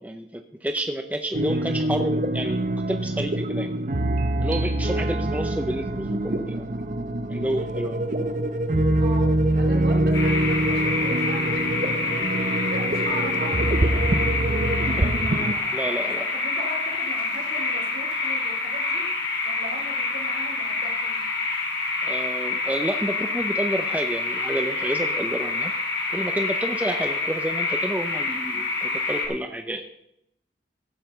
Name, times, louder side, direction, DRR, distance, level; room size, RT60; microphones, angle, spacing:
voice 1, 0.0-3.7 4.4-6.9 7.3-8.0 15.0-15.1 15.7-16.3 22.0-25.7 26.1-29.8, right 1 dB, 10° right, 5 dB, 0.6 m, -30 dB
sound 1, 1.3-15.5, right 1 dB, 45° right, 0.8 m, -24 dB
voice 2, 9.0-12.2 12.6-14.5 14.8-19.1 19.4-21.2, right 1 dB, 65° right, 1 dB, 3.1 m, -38 dB
sound 2, 10.1-29.3, left 3 dB, 80° left, 2.9 m, -27 dB
15.0 x 5.8 x 6.8 m, 0.80 s
head